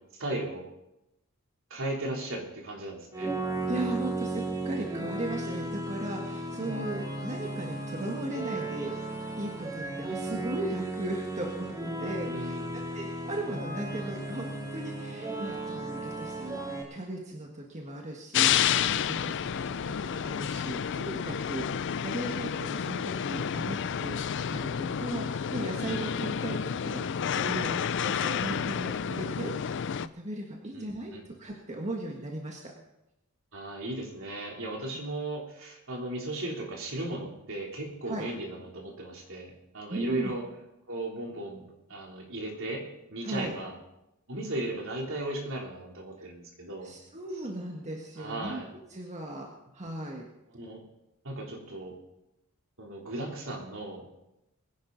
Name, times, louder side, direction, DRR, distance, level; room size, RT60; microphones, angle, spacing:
voice 1, 0.2-0.6 1.7-3.3 12.2-12.8 21.3-21.4 30.7-31.2 33.5-40.4 40.9-41.6 41.9-43.7 44.3-46.9 48.2-48.7 50.5-50.8 51.2-51.9 52.8-54.1, right 2 dB, 65° right, -1 dB, 3.5 m, -36 dB
sound 1, 3.1-16.8, right 2 dB, 15° right, 2.5 m, -35 dB
voice 2, 3.7-24.2 24.5-29.5 30.0-32.6 38.1-38.3 39.9-40.3 43.2-43.5 46.8-48.6 48.9-49.5 49.7-50.3, right 1 dB, 35° right, 0 dB, 1.7 m, -37 dB
sound 2, 18.3-30.1, left 8 dB, 55° left, 0.4 m, -30 dB
22.5 x 10.5 x 4.1 m, 0.90 s
head